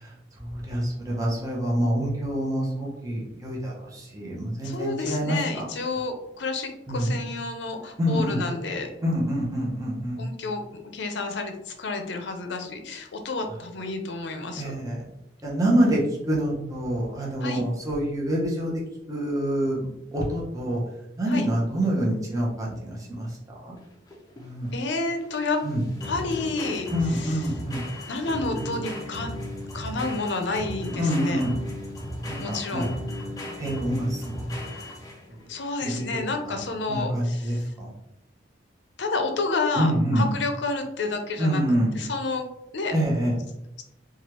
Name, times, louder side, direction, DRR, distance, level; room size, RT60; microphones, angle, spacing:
voice 1, 0.4-5.4 6.9-7.1 8.0-8.4 9.0-10.2 14.6-15.0 15.4-16.0 16.3-18.7 19.1-19.9 20.1-20.8 21.2-23.3 23.7-23.8 24.4-24.7 25.6-25.8 26.9-27.8 28.6-28.7 30.9-31.5 32.3-32.9 33.6-34.4 35.8-36.0 36.9-37.9 39.8-40.3 41.4-41.9 42.9-43.3, equal, 20° right, -4 dB, 0.7 m, -26 dB
voice 2, 4.6-8.9 10.2-10.6 10.9-14.8 17.4-17.6 21.3-21.5 24.7-25.6 26.0-27.5 28.1-29.3 29.7-31.5 32.4-32.9 35.5-37.7 39.0-41.6 41.9-42.5 42.7-42.9, left 3 dB, 70° left, 5 dB, 0.5 m, -30 dB
sound 1, 23.8-35.4, left 1 dB, 20° left, 0.5 m, -36 dB
3.2 x 2.3 x 2.9 m, 0.87 s
head